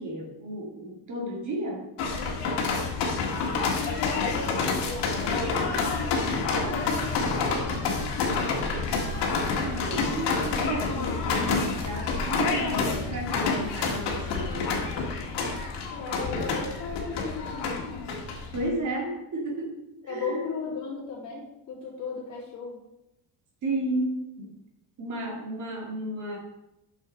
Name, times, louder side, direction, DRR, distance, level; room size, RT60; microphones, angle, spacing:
voice 1, 0.0-1.9 9.6-14.8 18.5-19.8 20.1-20.4 23.6-24.5 25.0-26.4, right 1 dB, 45° right, 0 dB, 2.1 m, -33 dB
sound 1, 2.0-18.7, left 4 dB, 70° left, 1.8 m, -28 dB
voice 2, 3.7-5.8 6.3-7.8 8.2-8.7 15.9-18.1 20.1-22.8, left 4 dB, 45° left, -7 dB, 3.4 m, -36 dB
9.2 x 6.4 x 4.2 m, 0.89 s
cardioid pair, 155°, 43 cm